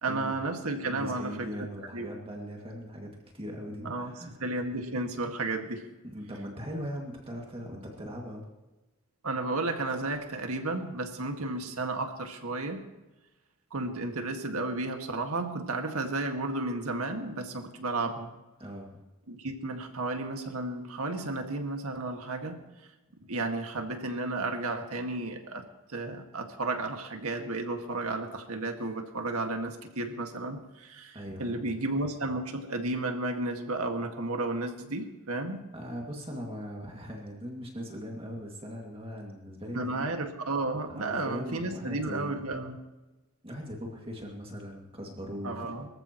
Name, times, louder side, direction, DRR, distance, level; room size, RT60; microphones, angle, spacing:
voice 1, 0.0-1.7 1.9-2.1 3.8-4.1 4.4-5.8 9.2-12.8 13.7-18.3 19.3-22.6 23.3-35.6 39.7-42.8 45.4-45.9, right 2 dB, 85° right, 4 dB, 1.8 m, -33 dB
voice 2, 0.8-4.4 6.0-8.4 18.6-18.9 31.1-31.6 35.7-40.1 40.9-42.4 43.4-45.8, equal, 25° right, -1 dB, 2.2 m, -40 dB
23.5 x 14.5 x 3.0 m, 1.1 s
head